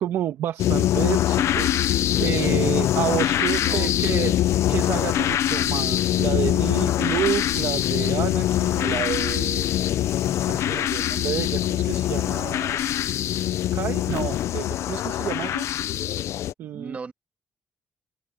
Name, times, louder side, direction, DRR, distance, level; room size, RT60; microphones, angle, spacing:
voice 1, 0.0-4.3 4.7-9.7 10.5-12.9 13.7-15.7 16.6-17.0, right 11 dB, 85° right, 1.4 m, -30 dB
sound 1, 0.6-16.5, left 12 dB, 80° left, 0.5 m, -23 dB
voice 2, 3.2-4.3 16.7-17.1, right 4 dB, 30° right, 2.4 m, -38 dB
open air
cardioid pair, 160°, 5 cm